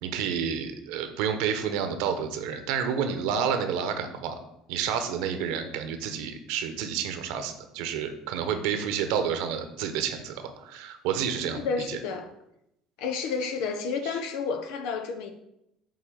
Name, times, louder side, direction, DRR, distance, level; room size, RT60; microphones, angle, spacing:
voice 1, 0.0-4.4 4.7-11.6 11.9-12.0, right 7 dB, 75° right, 8 dB, 1.1 m, -29 dB
voice 2, 11.6-12.3 13.0-15.3, left 5 dB, 70° left, 6 dB, 1.0 m, -30 dB
9.2 x 3.3 x 6.8 m, 0.82 s
hypercardioid pair, 75°, 0 cm